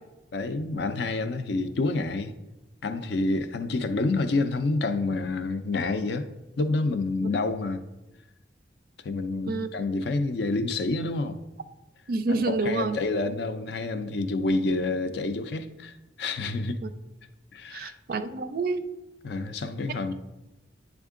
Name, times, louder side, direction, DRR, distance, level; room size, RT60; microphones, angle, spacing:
voice 1, 0.3-2.3 2.8-6.3 6.6-7.8 9.0-11.4 12.5-16.8 17.5-18.0 19.2-20.1, left 3 dB, 65° left, 0.5 m, -28 dB
voice 2, 12.1-13.0 16.8-16.9 17.7-18.8, right 3 dB, 50° right, 0.4 m, -28 dB
10.0 x 3.6 x 3.7 m
head